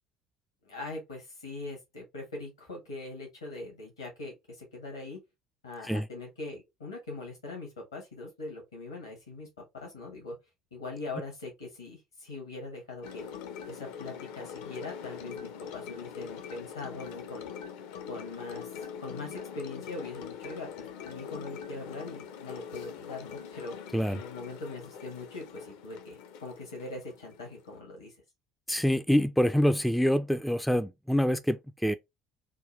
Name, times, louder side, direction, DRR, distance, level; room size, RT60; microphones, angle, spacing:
voice 1, 0.6-5.2 5.6-9.5 9.7-10.4 10.7-13.2 13.7-17.5 18.1-23.7 24.1-28.1, left 2 dB, 80° left, 1.1 m, -41 dB
sound 1, 13.0-27.8, left 7 dB, 60° left, 0.5 m, -43 dB
voice 2, 28.7-31.9, equal, ahead, 0.3 m, -26 dB
3.7 x 2.3 x 3.0 m
figure-of-eight pair, 60°, 2 cm